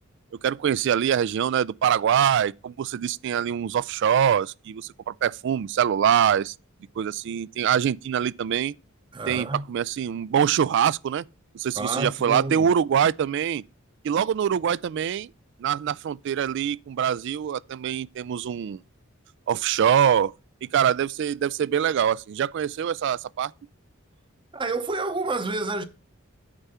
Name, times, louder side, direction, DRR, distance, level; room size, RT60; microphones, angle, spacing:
voice 1, 0.4-6.5 7.0-8.7 9.3-11.2 11.5-13.6 14.0-15.3 15.6-18.8 19.5-20.3 20.6-23.5, right 8 dB, 60° right, 0.3 m, -24 dB
voice 2, 9.1-9.6 11.8-12.7 24.5-25.8, right 3 dB, 25° right, 0.7 m, -29 dB
8.8 x 4.6 x 5.6 m
head